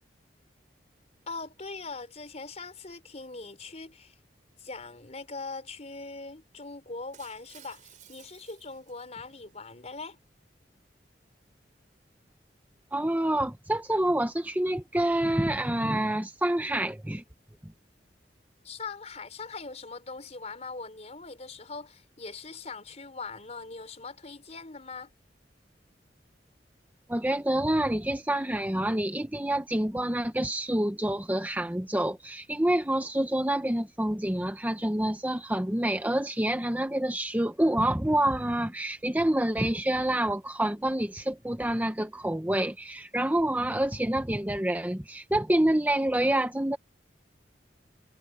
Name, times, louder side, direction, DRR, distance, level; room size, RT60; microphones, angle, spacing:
voice 1, 1.3-4.2 4.6-10.2 18.6-25.1, left 3 dB, 40° left, 4.4 m, -41 dB
Shatter, 7.1-9.5, right 9 dB, 45° right, 5.3 m, -55 dB
voice 2, 12.9-17.2 27.1-46.8, right 1 dB, 10° right, 0.9 m, -27 dB
head